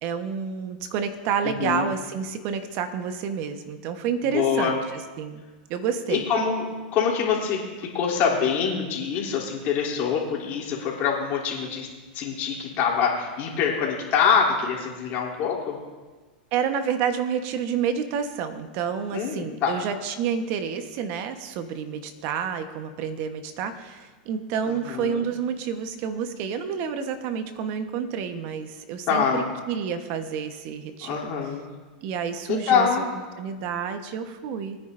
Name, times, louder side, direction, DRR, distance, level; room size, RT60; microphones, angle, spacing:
voice 1, 0.0-5.4 5.7-6.3 16.5-31.3 32.0-32.9 33.4-34.8, right 7 dB, 50° right, 8 dB, 1.2 m, -29 dB
voice 2, 1.4-1.9 4.2-4.8 6.1-6.7 6.9-11.9 12.1-15.8 19.1-19.7 24.6-25.3 29.1-29.5 31.0-31.7 32.5-33.0, left 6 dB, 45° left, -3 dB, 3.3 m, -25 dB
22.0 x 9.9 x 2.7 m, 1.3 s
hypercardioid pair, 120°, 5 cm